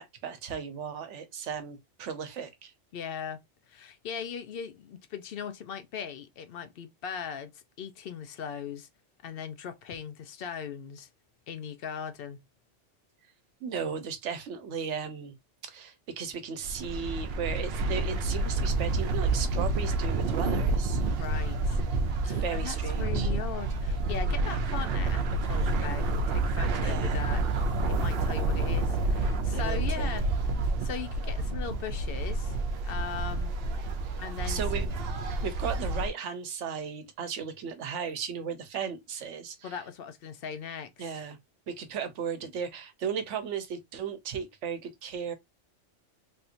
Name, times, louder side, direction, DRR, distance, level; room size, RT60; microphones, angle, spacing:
voice 1, 0.0-2.7 13.6-15.3 15.6-21.0 22.2-23.3 26.8-27.2 29.5-30.2 34.0-34.9 35.4-39.7 41.0-41.4 41.7-45.3, right 7 dB, 85° right, 1.0 m, -36 dB
voice 2, 2.9-3.4 3.7-8.9 9.2-11.1 11.5-12.4 21.1-21.8 22.2-30.3 30.8-32.5 32.8-33.5 34.2-34.6 39.6-41.2, left 7 dB, 60° left, 0.7 m, -39 dB
sound 1, 16.6-36.1, right 2 dB, 60° right, 0.8 m, -29 dB
3.4 x 2.8 x 2.5 m
omnidirectional pair, 1.2 m